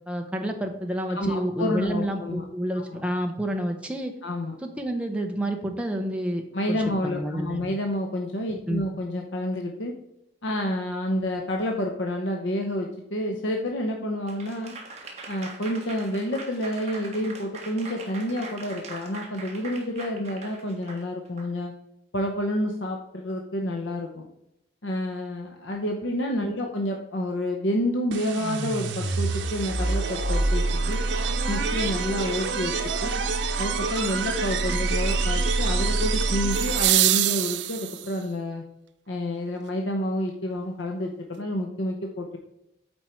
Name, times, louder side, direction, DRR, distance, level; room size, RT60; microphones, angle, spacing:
voice 1, 0.1-4.1 4.6-6.4 6.7-7.7 8.5-8.8 26.4-26.5, right 1 dB, 5° right, 2 dB, 0.7 m, -29 dB
voice 2, 1.1-2.4 2.7-3.0 4.2-4.5 6.5-9.9 10.4-14.7 15.3-21.7 22.1-24.3 24.8-31.0 31.5-33.1 33.6-38.6 39.1-42.4, left 1 dB, 85° left, 2 dB, 0.9 m, -29 dB
Applause / Crowd, 14.3-21.5, right 3 dB, 35° right, 1.4 m, -42 dB
sound 1, 28.1-37.3, right 3 dB, 90° right, 0.8 m, -26 dB
sound 2, 30.9-31.0 36.5-38.3 40.5-40.6, right 15 dB, 70° right, 0.4 m, -24 dB
8.7 x 4.5 x 4.4 m, 0.84 s
head